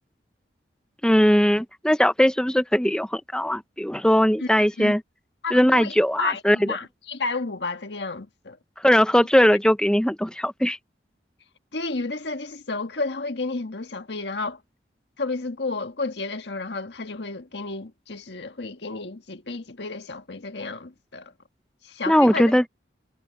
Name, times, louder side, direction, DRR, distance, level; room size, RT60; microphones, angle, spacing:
voice 1, 1.0-5.0 5.5-6.7 8.8-10.8 22.1-22.6, equal, 5° left, 0.7 m, -19 dB
voice 2, 5.4-8.6 11.7-14.6 15.2-21.3 21.8-22.5, left 3 dB, 80° left, 1.6 m, -31 dB
head